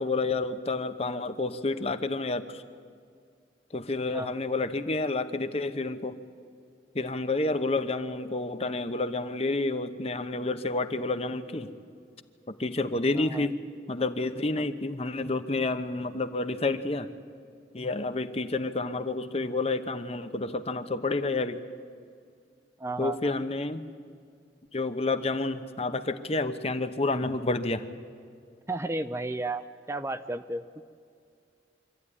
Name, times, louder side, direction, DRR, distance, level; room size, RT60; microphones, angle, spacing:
voice 1, 0.0-2.6 3.7-6.2 6.9-11.7 12.5-13.6 13.9-17.1 17.7-21.6 23.0-23.8 24.7-27.9, left 2 dB, 35° left, 10 dB, 0.9 m, -29 dB
voice 2, 13.2-13.5 22.8-23.3 28.7-30.6, right 2 dB, 15° right, 10 dB, 0.5 m, -33 dB
25.0 x 14.0 x 9.9 m, 2.3 s
head